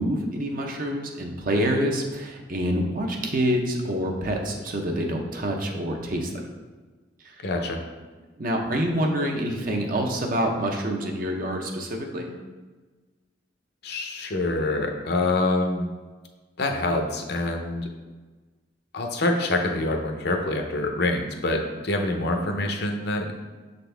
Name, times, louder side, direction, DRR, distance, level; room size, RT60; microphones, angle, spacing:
voice 1, 0.0-6.4 8.4-12.3, equal, 50° right, 2 dB, 0.8 m, -26 dB
voice 2, 7.4-7.8 13.8-15.9 16.6-17.9 18.9-23.3, left 2 dB, 60° left, 3 dB, 0.7 m, -26 dB
6.9 x 4.0 x 3.4 m, 1.3 s
head